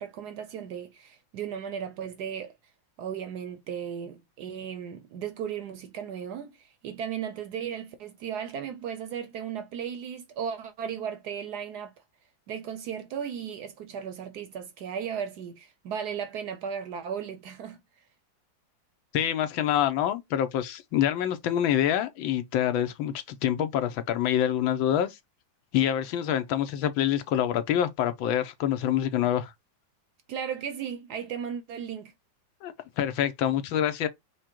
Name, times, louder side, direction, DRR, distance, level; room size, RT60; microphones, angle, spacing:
voice 1, 0.0-2.5 3.0-11.9 12.5-17.8 30.3-32.1, right 8 dB, 70° right, 1.0 m, -36 dB
voice 2, 19.1-25.2 25.7-29.5 32.6-34.1, left 10 dB, 85° left, 1.5 m, -26 dB
4.9 x 2.2 x 4.4 m
omnidirectional pair, 2.1 m